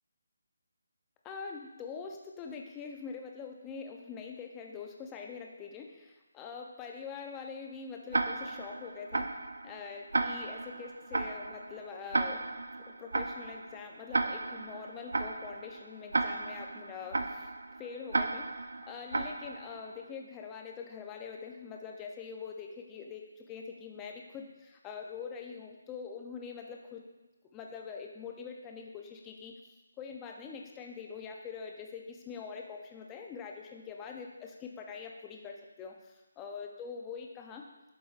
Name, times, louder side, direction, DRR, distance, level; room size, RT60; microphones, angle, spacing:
voice 1, 1.2-9.3 9.6-12.5 13.0-17.5 17.8-18.5 18.9-27.0 27.5-37.7, left 6 dB, 10° left, 1 dB, 0.4 m, -44 dB
Tick-tock, 8.1-20.0, right 3 dB, 75° right, 0.5 m, -35 dB
12.0 x 4.8 x 2.4 m, 1.1 s
hypercardioid pair, 175°, 0 cm